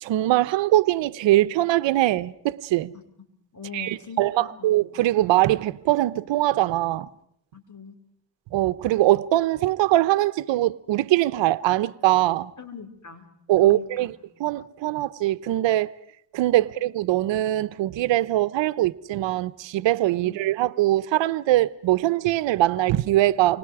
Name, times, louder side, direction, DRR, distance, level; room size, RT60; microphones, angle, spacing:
voice 1, 0.0-2.9 3.7-7.1 8.5-12.5 13.5-14.1 14.4-15.9 16.3-23.6, right 15 dB, 90° right, 0.9 m, -22 dB
voice 2, 3.5-4.8 7.5-7.9 12.6-13.3 13.6-14.1 20.2-20.4, left 5 dB, 40° left, 5.1 m, -41 dB
29.5 x 25.5 x 4.9 m
cardioid pair, 70°, 43 cm